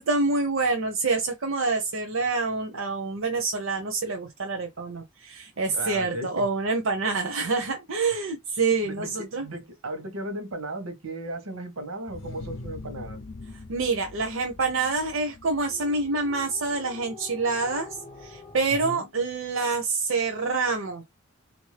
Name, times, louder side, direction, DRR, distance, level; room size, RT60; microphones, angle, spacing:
voice 1, 0.0-9.5 13.7-17.9 18.2-21.0, right 3 dB, 75° right, 0.7 m, -27 dB
voice 2, 5.7-6.5 8.8-9.1 9.4-13.2 18.8-19.1, right 1 dB, 90° right, 1.0 m, -35 dB
sound 1, 12.1-17.6, left 2 dB, 70° left, 0.5 m, -43 dB
sound 2, 15.6-18.8, left 2 dB, 30° left, 0.7 m, -46 dB
3.5 x 2.6 x 3.2 m
head